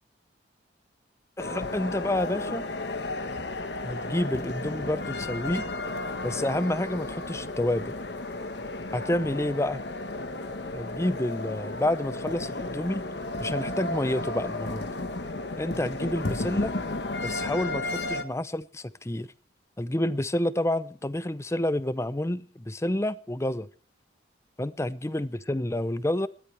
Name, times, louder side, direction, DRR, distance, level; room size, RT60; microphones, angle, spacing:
sound 1, 1.4-18.2, left 2 dB, 55° left, 1.2 m, -33 dB
voice 1, 1.4-2.6 3.8-5.7 6.2-8.0 8.9-9.8 10.7-13.0 13.4-14.9 15.6-16.7 17.2-19.3 19.8-23.7 24.6-26.3, left 1 dB, 15° left, 0.6 m, -29 dB
20.0 x 13.5 x 3.3 m
head